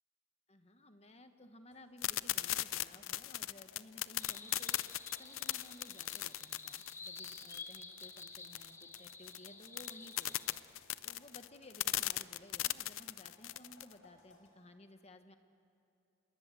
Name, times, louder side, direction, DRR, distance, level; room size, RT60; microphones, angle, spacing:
voice 1, 0.5-15.3, left 1 dB, 30° left, 7 dB, 1.4 m, -57 dB
sound 1, 1.7-14.5, left 2 dB, 65° left, 4.9 m, -68 dB
sound 2, 2.0-13.9, left 14 dB, 85° left, 0.6 m, -37 dB
sound 3, 4.2-10.6, left 3 dB, 15° left, 1.5 m, -51 dB
27.0 x 22.0 x 7.8 m, 2.9 s
head